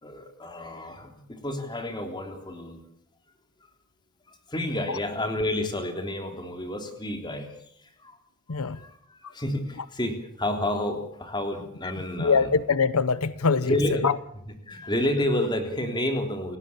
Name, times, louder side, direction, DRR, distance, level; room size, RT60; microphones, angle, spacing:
voice 1, 0.0-2.8 4.3-7.5 8.0-8.1 8.5-12.5 13.6-14.0 14.7-16.6, left 1 dB, 20° left, 5 dB, 3.5 m, -30 dB
voice 2, 8.5-8.8 9.2-9.3 12.2-14.2, left 5 dB, 85° left, 16 dB, 0.8 m, -24 dB
29.5 x 16.5 x 7.3 m, 0.69 s
head